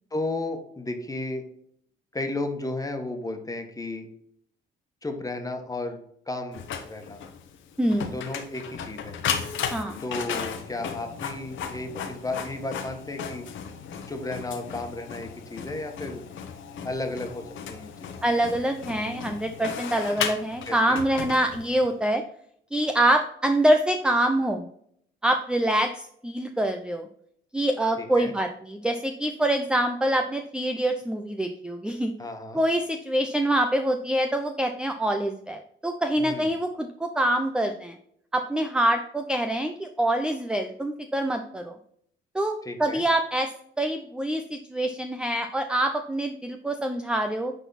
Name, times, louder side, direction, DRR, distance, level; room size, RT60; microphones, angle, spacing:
voice 1, 0.1-1.4 2.1-4.1 5.0-6.0 6.3-7.2 8.1-9.2 10.0-13.4 14.1-16.2 16.8-17.4 17.7-18.1 20.7-21.0 28.0-28.3 32.2-32.6 36.2-36.5 42.6-43.0, left 2 dB, 15° left, 5 dB, 1.6 m, -33 dB
Printer, 6.5-21.9, left 7 dB, 75° left, 1.2 m, -35 dB
voice 2, 7.8-8.2 9.7-10.0 18.2-22.2 22.7-24.7 25.2-27.1 27.5-32.1 32.5-38.0 38.3-41.8 42.3-47.5, right 1 dB, 5° right, 6 dB, 0.6 m, -25 dB
9.9 x 4.1 x 4.2 m, 0.68 s
cardioid pair, 90°, 20 cm